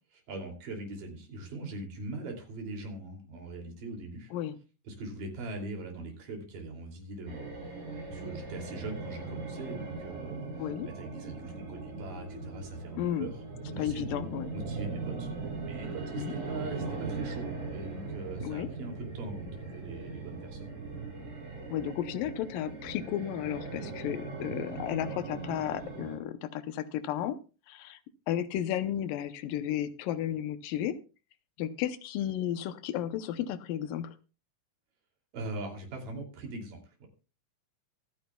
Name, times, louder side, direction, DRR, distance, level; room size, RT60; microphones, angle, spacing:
voice 1, 0.3-4.3 4.9-7.6 8.1-13.4 13.7-20.7 35.3-37.1, right 2 dB, 80° right, 3 dB, 4.5 m, -41 dB
sound 1, 7.3-26.2, right 3 dB, 60° right, 5.8 m, -39 dB
voice 2, 13.0-13.3 13.8-14.5 16.2-16.3 18.4-18.7 21.7-27.4 27.7-28.0 28.3-31.0 31.6-34.2, left 11 dB, 85° left, 12 dB, 2.5 m, -33 dB
24.5 x 9.5 x 2.3 m, 0.32 s
omnidirectional pair, 3.9 m